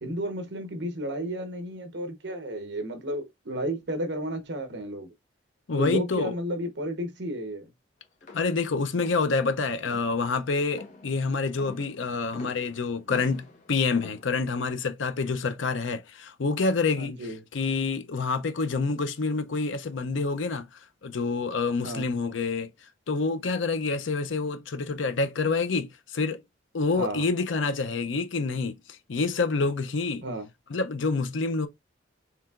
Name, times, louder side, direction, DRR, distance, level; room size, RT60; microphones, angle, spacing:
voice 1, 0.0-5.1 5.7-7.6 17.0-17.4 21.8-22.1 27.0-27.2 30.2-30.5, right 1 dB, 65° right, 1.0 m, -32 dB
voice 2, 5.7-6.3 8.3-17.1 17.5-20.7 21.0-22.7 23.1-26.4 26.7-28.8 29.1-30.2 30.7-31.7, left 4 dB, 90° left, 0.6 m, -27 dB
sound 1, 8.2-14.7, left 2 dB, 40° left, 1.1 m, -47 dB
4.7 x 3.4 x 2.4 m
head